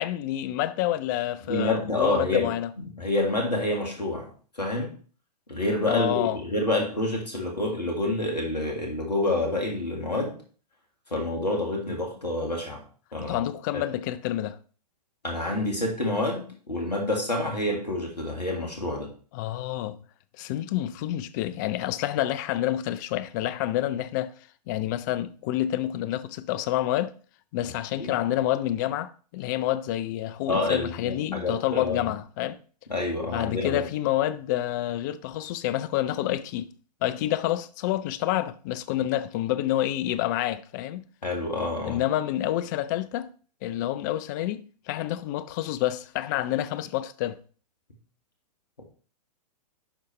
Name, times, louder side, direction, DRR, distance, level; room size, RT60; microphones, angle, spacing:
voice 1, 0.0-2.7 5.9-6.4 13.2-14.6 19.3-20.0 20.4-24.3 24.7-27.1 27.5-32.6 33.3-36.7 37.0-41.0 41.8-43.3 43.6-47.4, left 13 dB, 30° left, 0.4 m, -28 dB
voice 2, 1.5-2.5 2.8-4.9 5.5-10.4 11.1-12.8 13.1-13.4 13.7-13.8 15.2-19.1 27.6-27.7 28.0-28.1 30.5-32.1 32.9-33.9 41.2-42.0 48.8-48.9, left 2 dB, 80° left, 1.9 m, -28 dB
11.0 x 4.1 x 3.1 m
figure-of-eight pair, 110°, 21 cm